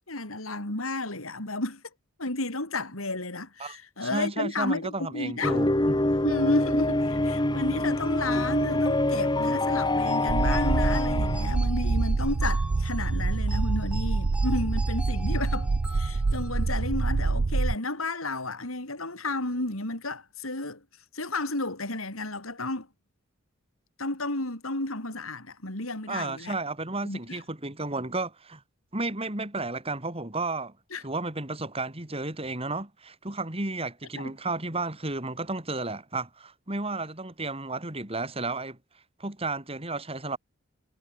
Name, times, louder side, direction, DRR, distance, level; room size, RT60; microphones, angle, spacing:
voice 1, 0.1-1.8 2.2-5.6 6.2-20.8 21.1-22.9 24.0-26.5 27.0-27.4 30.9-31.0 34.2-34.3, left 2 dB, 90° left, 5.5 m, -32 dB
voice 2, 4.0-6.0 26.1-28.6 28.9-30.7 31.0-38.8 39.2-40.4, right 2 dB, 30° right, 3.4 m, -33 dB
sound 1, 5.4-11.5, left 1 dB, 20° left, 1.4 m, -25 dB
sound 2, 10.1-16.9, right 1 dB, 5° right, 4.6 m, -44 dB
sound 3, 10.3-17.7, right 3 dB, 55° right, 0.6 m, -26 dB
head